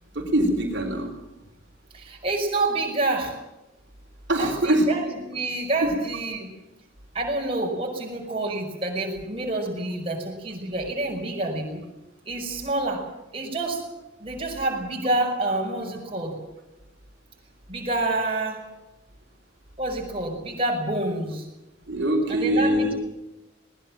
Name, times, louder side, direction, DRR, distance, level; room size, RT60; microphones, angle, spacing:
voice 1, 0.1-1.1 4.3-4.9 5.8-5.9 21.9-22.9, right 1 dB, 60° right, 1 dB, 3.9 m, -23 dB
voice 2, 1.9-3.3 4.4-6.5 7.1-11.8 12.3-13.0 13.3-13.8 14.2-16.3 17.7-18.6 19.8-21.5 22.3-22.9, right 2 dB, 30° right, 0 dB, 5.2 m, -28 dB
21.5 x 19.5 x 7.5 m, 0.98 s
head